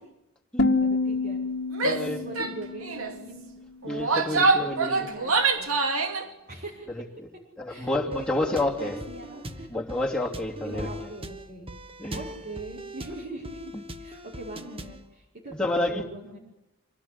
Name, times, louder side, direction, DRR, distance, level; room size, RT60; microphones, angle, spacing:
sound 1, 0.6-3.6, left 3 dB, 50° left, 1.7 m, -28 dB
voice 1, 0.8-1.4 1.8-3.4 3.9-5.7 6.5-6.9 7.7-9.8 10.6-11.7 12.1-16.4, right 2 dB, 45° right, -5 dB, 5.9 m, -41 dB
Female speech woman speaking / Yell, 1.7-2.1 2.4-2.5 2.8-3.1 3.8-6.2, right 3 dB, 90° right, 2.7 m, -25 dB
voice 2, 1.8-2.5 3.8-5.1 6.9-7.3 7.6-9.0 9.7-10.9 12.0-12.2 13.7-13.8 15.5-16.0, left 1 dB, 5° left, -3 dB, 3.2 m, -29 dB
sound 2, 8.1-15.1, right 1 dB, 25° right, 1.3 m, -41 dB
26.5 x 18.5 x 9.8 m, 0.94 s
head